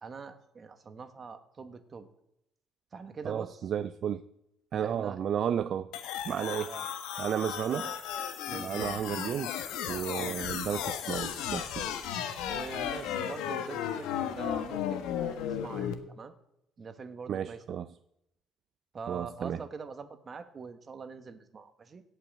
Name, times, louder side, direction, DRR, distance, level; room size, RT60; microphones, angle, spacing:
voice 1, 0.0-2.1 2.9-3.6 4.8-5.2 6.7-6.9 7.6-7.9 8.5-8.9 10.1-10.4 12.5-16.3 16.8-17.8 18.9-22.0, right 5 dB, 30° right, 1.2 m, -44 dB
voice 2, 3.2-4.2 4.7-5.9 6.2-6.7 7.2-7.9 8.5-9.6 9.9-11.9 17.3-17.9 19.1-19.6, right 9 dB, 50° right, 0.4 m, -33 dB
sound 1, 5.9-15.9, left 9 dB, 85° left, 1.3 m, -35 dB
17.0 x 5.7 x 7.9 m
cardioid pair, 125°, 0 cm